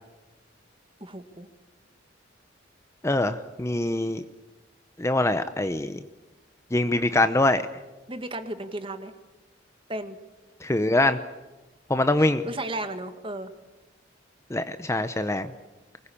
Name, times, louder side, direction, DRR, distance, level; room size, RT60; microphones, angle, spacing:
voice 1, 1.0-1.5 8.1-9.1 9.9-10.2 12.2-13.5, right 1 dB, 25° right, 9 dB, 1.8 m, -34 dB
voice 2, 3.0-4.2 5.0-6.0 6.7-7.6 10.6-11.2 11.9-12.4 14.5-15.5, left 2 dB, 15° left, 10 dB, 0.7 m, -23 dB
24.5 x 20.5 x 8.7 m, 1.1 s
head